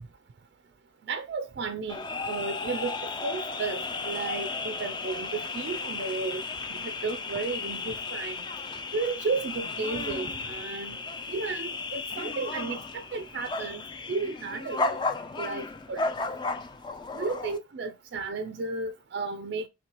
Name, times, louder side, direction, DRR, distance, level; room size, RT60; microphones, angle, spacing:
voice 1, 1.1-3.0 3.2-6.4 6.7-8.4 8.9-11.0 11.3-13.8 14.1-15.0 15.4-16.0 17.1-19.7, right 4 dB, 55° right, 0.3 m, -33 dB
sound 1, 1.9-17.6, left 3 dB, 25° left, 0.3 m, -34 dB
3.1 x 2.9 x 4.5 m
head